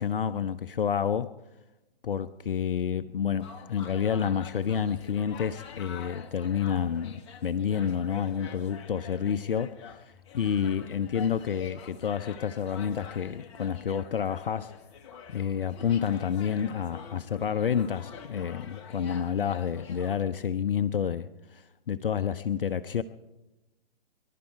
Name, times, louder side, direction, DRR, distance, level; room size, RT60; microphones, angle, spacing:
voice 1, 0.0-1.3 2.0-14.7 15.3-23.0, left 8 dB, 60° left, 13 dB, 0.6 m, -29 dB
sound 1, 3.4-20.2, left 7 dB, 30° left, 1.0 m, -47 dB
23.5 x 11.5 x 4.5 m, 1.0 s
figure-of-eight pair, 130°, 31 cm